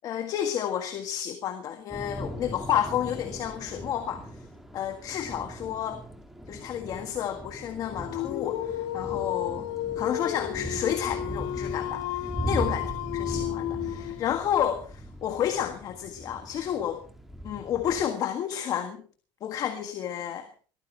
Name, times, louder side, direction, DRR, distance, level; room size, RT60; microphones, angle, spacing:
voice 1, 0.0-4.3 4.7-6.0 6.5-9.7 10.0-12.9 13.1-17.0 17.4-19.0 19.4-20.5, left 10 dB, 35° left, 7 dB, 1.7 m, -30 dB
Thunder / Rain, 1.9-18.0, right 1 dB, ahead, 2.0 m, -39 dB
Dog, 8.0-14.4, left 12 dB, 80° left, 1.6 m, -32 dB
22.5 x 14.5 x 3.4 m, 0.40 s
cardioid pair, 175°, 10 cm